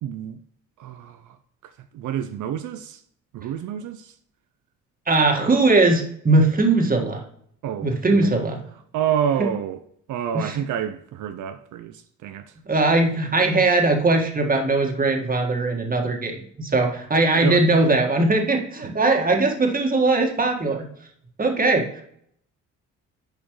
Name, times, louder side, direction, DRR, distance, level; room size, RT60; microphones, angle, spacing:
voice 1, 0.0-0.4 0.8-1.4 1.6-3.0 3.3-4.2 7.6-8.3 8.9-9.8 10.1-12.5 17.4-17.7, right 9 dB, 80° right, 0.6 m, -28 dB
voice 2, 5.1-7.2 7.8-8.6 9.4-9.5 10.3-10.5 12.7-20.8 21.4-22.0, right 2 dB, 30° right, 1.8 m, -20 dB
10.0 x 5.1 x 3.1 m
cardioid pair, 90°, 30 cm